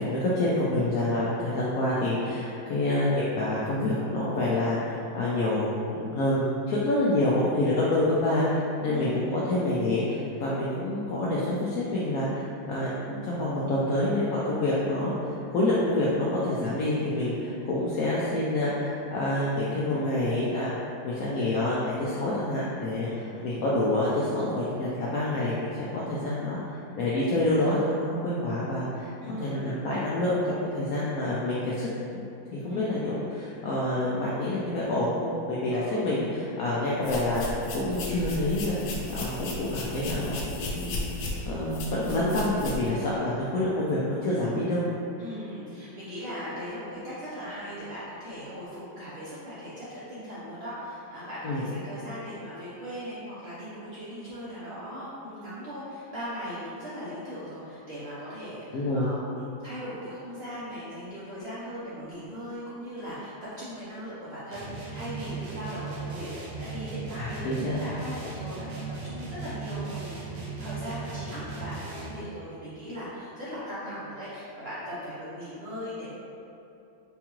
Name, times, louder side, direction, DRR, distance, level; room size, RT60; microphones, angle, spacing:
voice 1, 0.0-23.1 23.4-29.1 29.4-32.2 32.5-41.1 41.5-44.8 51.4-51.6 58.7-59.1 67.2-67.8, left 1 dB, 90° left, -7 dB, 0.7 m, -27 dB
voice 2, 8.8-9.3 23.0-23.5 29.2-29.7 32.7-33.0 35.7-36.0 45.2-76.1, equal, 65° right, -11 dB, 0.6 m, -39 dB
sound 1, 37.0-42.9, left 2 dB, 70° left, 1.1 m, -35 dB
sound 2, 64.5-72.3, right 4 dB, 90° right, 1.5 m, -37 dB
4.5 x 2.3 x 2.9 m, 2.8 s
omnidirectional pair, 2.1 m